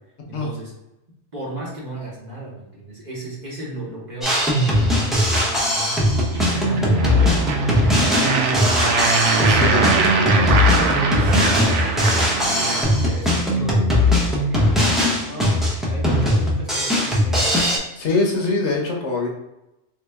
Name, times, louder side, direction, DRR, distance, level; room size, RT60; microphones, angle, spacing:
voice 1, 0.3-0.7 1.3-6.0 6.3-14.6 15.2-17.6, right 1 dB, 40° right, -5 dB, 1.0 m, -34 dB
Drum kit, 4.2-17.8, left 1 dB, ahead, 0.5 m, -19 dB
sound 1, 6.3-12.8, right 4 dB, 75° right, 0.9 m, -22 dB
voice 2, 9.4-9.8 17.9-19.3, left 3 dB, 65° left, 1 dB, 0.9 m, -22 dB
3.1 x 2.8 x 3.4 m, 0.93 s
omnidirectional pair, 1.3 m